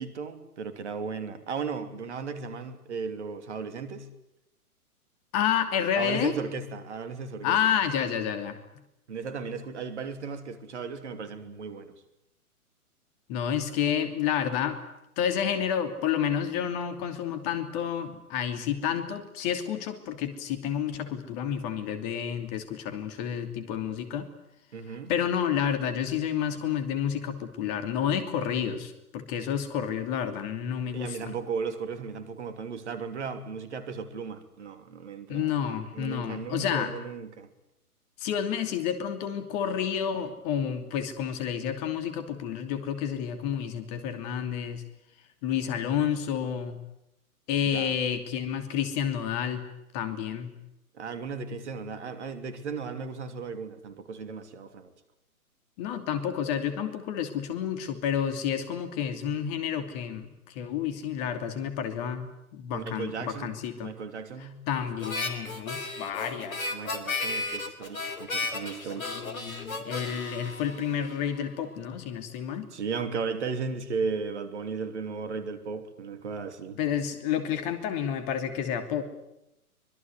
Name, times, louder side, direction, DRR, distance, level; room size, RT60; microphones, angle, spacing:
voice 1, 0.0-4.1 5.9-7.6 9.1-11.9 24.7-25.1 30.9-35.5 35.9-37.5 47.6-48.0 50.9-54.9 62.7-64.7 66.7-69.2 72.7-76.8, right 5 dB, 50° right, 3.0 m, -36 dB
voice 2, 5.3-6.4 7.4-8.6 13.3-14.8 15.2-24.3 25.1-31.3 35.3-36.9 38.2-44.8 45.4-46.8 47.5-49.6 49.9-50.5 55.8-63.9 64.4-66.7 69.0-72.7 76.8-79.0, left 8 dB, 25° left, 2.8 m, -30 dB
Harmonica, 65.0-71.5, left 3 dB, 65° left, 4.2 m, -34 dB
25.0 x 21.5 x 9.5 m
figure-of-eight pair, 125°, 45 cm